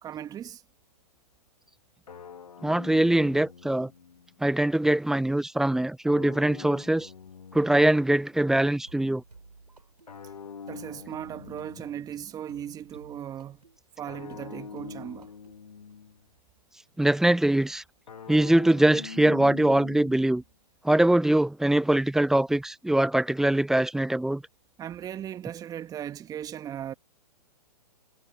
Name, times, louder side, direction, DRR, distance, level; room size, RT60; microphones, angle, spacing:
voice 1, 0.0-0.6 10.7-13.6 14.0-15.3 24.8-26.9, right 10 dB, 20° right, 1.8 m, -37 dB
sound 1, 2.1-4.4 6.1-8.3 10.1-12.4 14.1-16.3 18.1-20.4, left 6 dB, 70° left, 2.0 m, -44 dB
voice 2, 2.6-3.9 4.4-7.1 7.5-9.2 17.0-17.8 18.3-20.4 20.8-24.4, right 1 dB, ahead, 0.7 m, -22 dB
sound 2, 8.9-16.0, right 3 dB, 85° right, 7.0 m, -54 dB
figure-of-eight pair, 115°, 20 cm